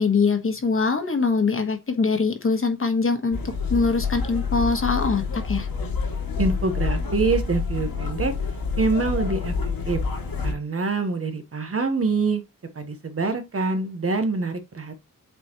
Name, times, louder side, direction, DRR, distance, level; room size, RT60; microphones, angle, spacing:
voice 1, 0.0-3.4 3.7-5.7, left 4 dB, 40° left, 1.3 m, -23 dB
sound 1, 3.3-10.5, left 4 dB, 90° left, 2.3 m, -27 dB
voice 2, 6.4-8.3 8.8-10.0 10.4-12.4 12.7-15.0, right 3 dB, 40° right, 1.2 m, -25 dB
8.1 x 4.3 x 3.0 m
wide cardioid pair, 145°, 34 cm